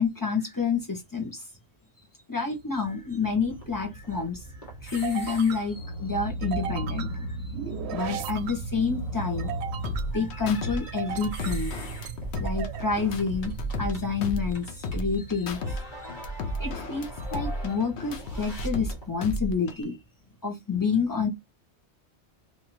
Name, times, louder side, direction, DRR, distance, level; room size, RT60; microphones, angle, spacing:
voice 1, 0.0-1.4 2.3-4.4 4.8-9.5 10.1-11.7 12.4-15.8 16.6-20.0 20.4-21.3, left 5 dB, 20° left, 1.1 m, -29 dB
sound 1, 2.6-15.3, right 8 dB, 80° right, 0.8 m, -39 dB
sound 2, 3.2-19.1, right 1 dB, 45° left, 1.5 m, -39 dB
sound 3, 9.8-10.8 11.1-14.0 14.2-15.8 16.1-18.9 19.2-19.8, left 1 dB, 80° left, 1.0 m, -33 dB
4.1 x 2.7 x 3.1 m
omnidirectional pair, 1.1 m